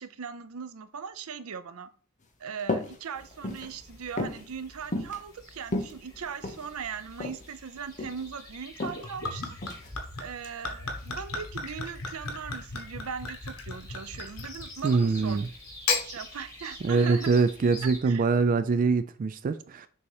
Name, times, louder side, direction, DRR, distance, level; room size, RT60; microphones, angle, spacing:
voice 1, 0.0-1.9 2.4-9.5 10.2-15.4 16.0-17.3 17.8-18.3, right 6 dB, 85° right, 0.5 m, -39 dB
sound 1, 2.6-3.0 3.3-3.7 4.2-4.4 4.9-5.2 5.6-6.7 7.2-7.4 7.8-8.2 8.8-9.0 9.6-9.9, left 2 dB, 35° left, 0.8 m, -32 dB
sound 2, 3.1-18.0, left 1 dB, 15° left, 2.0 m, -48 dB
Gurgling / Chink clink / Liquid, 8.8-15.0 15.7-16.1, left 4 dB, 85° left, 1.2 m, -35 dB
voice 2, 14.8-15.5 16.8-19.9, right 4 dB, 40° right, 0.3 m, -24 dB
6.9 x 2.9 x 4.8 m
head